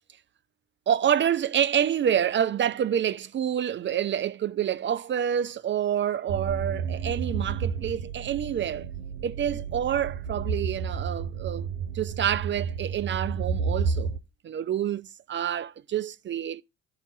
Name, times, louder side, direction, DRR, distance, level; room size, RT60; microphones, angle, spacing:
voice 1, 0.9-8.9 9.2-11.7 11.9-14.1 14.4-16.6, right 9 dB, 30° right, 0.4 m, -27 dB
sound 1, 6.3-14.2, right 6 dB, 85° right, 0.7 m, -31 dB
13.0 x 4.8 x 3.8 m
figure-of-eight pair, 50°, 40 cm